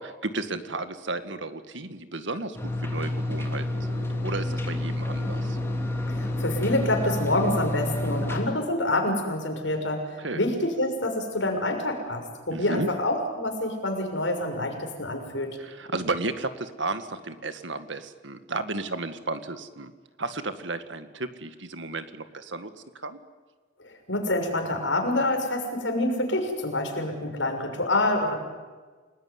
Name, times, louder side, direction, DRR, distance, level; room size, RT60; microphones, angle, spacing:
voice 1, 0.0-5.6 10.2-10.4 12.5-12.9 15.6-19.9 20.2-22.7 23.0-23.2, right 2 dB, 75° right, 10 dB, 1.9 m, -33 dB
sound 1, 2.5-8.4, left 1 dB, 10° left, 3.0 m, -29 dB
voice 2, 6.1-10.0 10.3-15.6 24.1-28.4, left 1 dB, 75° left, 3 dB, 6.2 m, -27 dB
29.5 x 20.0 x 9.7 m, 1.4 s
head